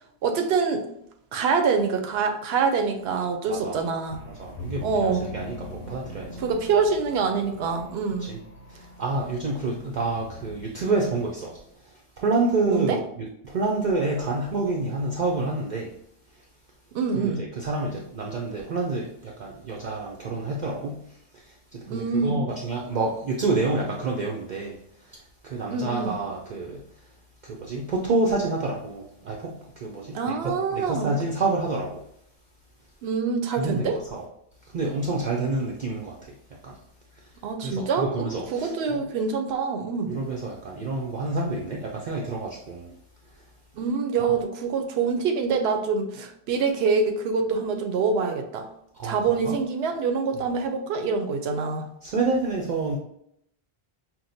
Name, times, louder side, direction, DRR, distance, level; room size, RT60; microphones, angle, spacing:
voice 1, 0.2-0.9 1.3-4.2 4.8-5.3 6.4-8.3 12.7-13.0 16.9-17.4 21.9-22.4 25.7-26.2 30.1-31.1 33.0-34.0 37.4-40.1 43.7-48.7 49.0-51.9, right 5 dB, 80° right, 5 dB, 0.9 m, -25 dB
voice 2, 3.5-3.9 4.3-6.4 8.2-8.4 8.7-11.6 11.8-15.9 16.3-16.4 17.1-27.1 27.4-32.0 33.6-34.2 34.7-36.3 36.6-36.8 37.2-37.3 37.6-39.0 40.1-42.9 43.4-43.5 48.9-49.6 52.0-53.0, right 3 dB, 55° right, -1 dB, 0.6 m, -28 dB
sound 1, 4.1-11.7, left 1 dB, 75° left, 1.1 m, -42 dB
5.9 x 2.1 x 2.6 m, 0.74 s
omnidirectional pair, 1.1 m